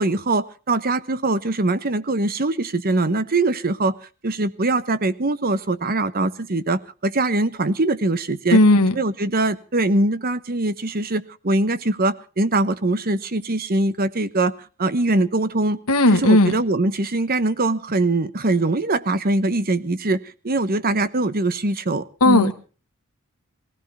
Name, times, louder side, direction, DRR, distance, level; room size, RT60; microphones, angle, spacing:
voice 1, 0.0-3.9 4.2-8.6 9.0-14.5 14.8-15.8 16.1-22.5, right 2 dB, 40° right, 14 dB, 1.1 m, -22 dB
voice 2, 8.5-8.9 15.9-16.5 22.2-22.5, left 1 dB, 90° left, 6 dB, 1.7 m, -15 dB
20.0 x 16.0 x 4.2 m, 0.37 s
head